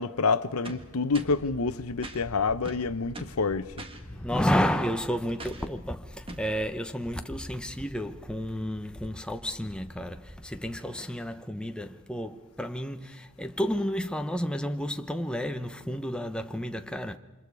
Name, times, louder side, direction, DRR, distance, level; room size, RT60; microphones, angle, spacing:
voice 1, 0.0-3.7, left 4 dB, 85° left, 0.8 m, -28 dB
sound 1, 0.6-1.5 2.0-2.2 2.6-3.4 3.8-4.0 5.4-5.7 6.3-6.5, right 1 dB, 25° right, 1.6 m, -42 dB
sound 2, 1.1-10.9, equal, 35° left, 2.0 m, -48 dB
voice 2, 4.1-17.2, equal, 5° left, 0.9 m, -31 dB
29.0 x 26.0 x 4.8 m
head